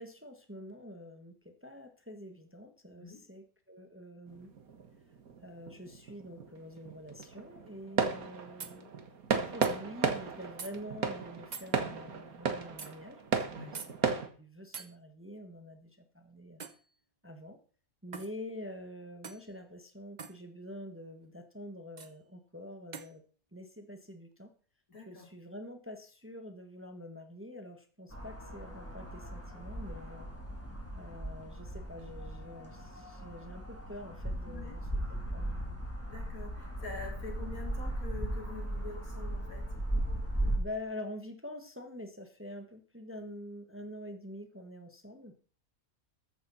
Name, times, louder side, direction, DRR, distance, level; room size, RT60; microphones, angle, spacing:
voice 1, 0.0-4.5 5.4-9.0 9.3-14.0 14.4-16.6 17.2-17.6 18.0-23.2 23.5-24.5 25.0-30.3 30.9-35.6 40.6-45.3, left 1 dB, 10° right, 6 dB, 1.4 m, -46 dB
sound 1, 4.3-14.3, right 5 dB, 80° right, 1.9 m, -35 dB
sound 2, 8.6-8.8 9.6-9.8 10.6-10.7 11.5-11.7 12.8-12.9 13.7-13.9 14.7-14.9 16.6-16.8 18.1-18.3 19.2-19.5 20.2-20.4 22.0-22.1 22.9-23.1, right 5 dB, 35° right, 0.9 m, -43 dB
voice 2, 13.5-13.9 24.9-25.3 34.4-34.8 36.1-39.7, left 3 dB, 75° left, 1 dB, 3.7 m, -45 dB
sound 3, 28.1-40.6, right 1 dB, 10° left, 2.8 m, -37 dB
14.0 x 9.8 x 4.2 m, 0.41 s
omnidirectional pair, 1.5 m